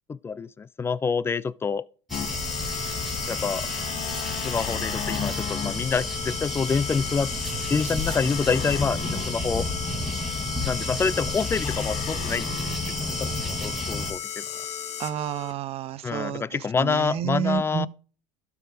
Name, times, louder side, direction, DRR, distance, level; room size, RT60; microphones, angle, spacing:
voice 1, 0.1-1.9 3.3-3.7 4.3-7.3 7.7-9.7 10.7-12.5 13.0-14.4 16.0-17.9, left 5 dB, 15° left, 0.3 m, -27 dB
sound 1, 2.1-15.5, left 9 dB, 45° left, 1.1 m, -34 dB
sound 2, 2.1-14.1, left 1 dB, ahead, 1.6 m, -31 dB
sound 3, 3.7-4.6 7.4-8.3, right 9 dB, 60° right, 1.6 m, -44 dB
voice 2, 15.0-17.9, right 10 dB, 40° right, 0.6 m, -30 dB
12.0 x 4.8 x 3.3 m
hypercardioid pair, 90°, 15 cm